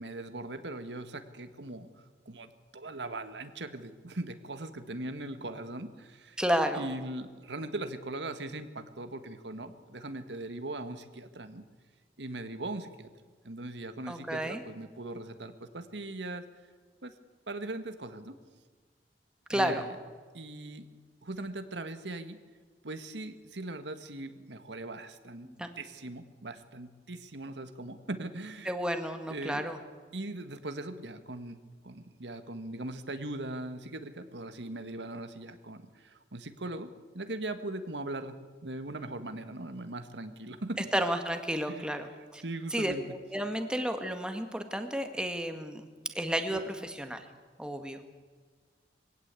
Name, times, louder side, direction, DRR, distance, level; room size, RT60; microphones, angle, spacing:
voice 1, 0.0-1.9 2.2-6.4 6.8-11.6 12.2-13.1 13.4-16.5 17.0-17.1 17.5-18.3 19.5-19.9 20.3-20.9 21.2-22.4 22.8-25.5 25.8-28.7 29.3-29.6 30.1-31.6 31.8-36.9 37.1-40.9 41.7-41.9 42.4-43.0, right 2 dB, 90° right, 9 dB, 1.6 m, -40 dB
voice 2, 6.4-6.9 14.1-14.6 19.5-19.8 25.4-25.7 28.6-29.8 40.9-42.4 42.7-45.9 46.1-47.3 47.6-48.0, equal, 5° right, 6 dB, 1.8 m, -32 dB
22.5 x 17.0 x 8.4 m, 1.5 s
head